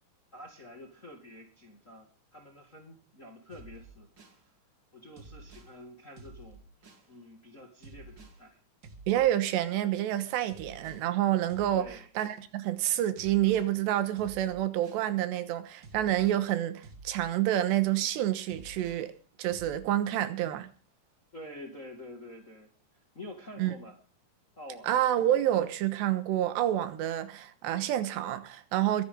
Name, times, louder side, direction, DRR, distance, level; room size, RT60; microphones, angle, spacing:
voice 1, 0.3-4.1 4.9-6.6 7.1-8.6 11.7-12.1 21.3-22.7 23.1-24.0 24.5-24.9, left 1 dB, 30° left, 1.5 m, -48 dB
sound 1, 3.5-4.4 5.2-5.7 6.2-7.1 7.8-8.4 8.8-9.7 10.5-11.1 11.5-12.4 13.2-13.7 14.2-15.1 15.8-16.4 16.8-17.8 18.5-19.1 19.5-19.8, right 3 dB, 45° right, 1.3 m, -51 dB
voice 2, 9.1-11.9 12.2-19.1 19.4-20.7 23.6-23.7 24.8-29.0, right 12 dB, 85° right, 3.4 m, -28 dB
22.5 x 10.5 x 3.8 m
omnidirectional pair, 4.9 m